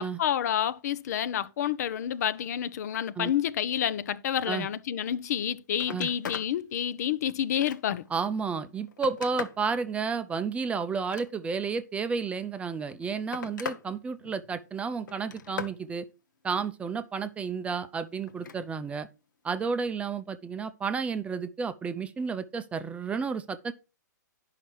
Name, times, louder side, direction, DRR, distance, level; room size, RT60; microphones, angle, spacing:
voice 1, 0.0-8.0, left 10 dB, 60° left, 0.7 m, -29 dB
Telephone, 5.3-5.4 5.7-6.5 7.0-8.1 8.6-9.7 10.9-11.7 12.7-13.9 14.2-14.7 15.1-15.8 18.3-18.6 20.0-20.1, left 7 dB, 80° left, 1.1 m, -40 dB
voice 2, 8.1-16.1 16.4-19.1 19.4-23.7, right 5 dB, 10° right, 0.5 m, -31 dB
9.9 x 5.8 x 4.5 m
hypercardioid pair, 130°, 10 cm